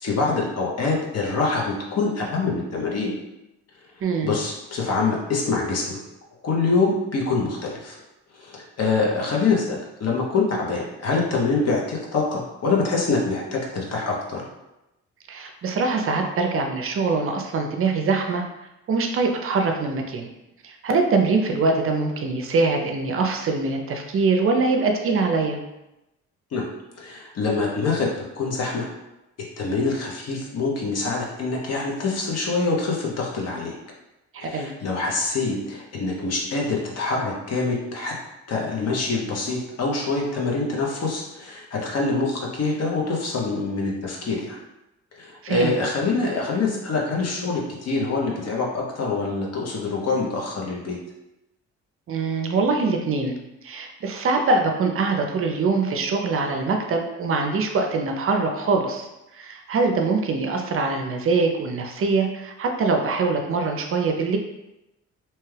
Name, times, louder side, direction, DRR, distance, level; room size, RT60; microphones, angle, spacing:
voice 1, 0.0-3.1 4.2-6.0 6.4-8.0 8.3-14.4 26.5-26.7 27.0-28.1 28.4-28.9 29.6-33.7 34.4-38.1 38.5-44.6 45.1-51.0, left 3 dB, 55° left, -2 dB, 0.8 m, -25 dB
voice 2, 4.0-4.3 15.3-18.4 18.9-20.3 20.6-25.6 34.3-34.7 45.4-45.7 52.1-53.4 53.6-64.4, right 4 dB, 45° right, 3 dB, 0.5 m, -23 dB
2.9 x 2.3 x 3.2 m, 0.94 s
cardioid pair, 90°, 30 cm